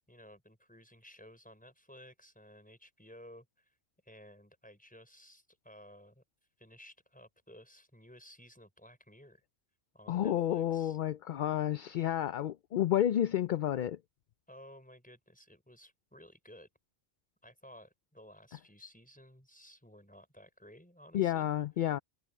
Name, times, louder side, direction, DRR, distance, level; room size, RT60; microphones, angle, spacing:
voice 1, 0.1-3.7 4.0-6.2 6.6-9.4 9.9-11.0 14.5-16.7 17.4-21.5, equal, 5° left, 5.1 m, -55 dB
voice 2, 10.1-14.0 21.1-22.0, left 11 dB, 60° left, 0.5 m, -30 dB
omnidirectional pair, 1.2 m